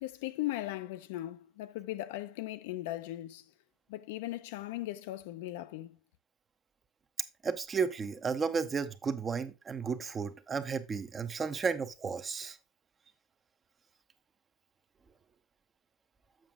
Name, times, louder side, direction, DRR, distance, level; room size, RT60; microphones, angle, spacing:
voice 1, 0.0-3.5 3.9-6.0, left 15 dB, 90° left, 0.5 m, -38 dB
voice 2, 7.4-12.6, right 5 dB, 20° right, 0.6 m, -33 dB
7.5 x 5.9 x 3.5 m
cardioid pair, 160°, 0 cm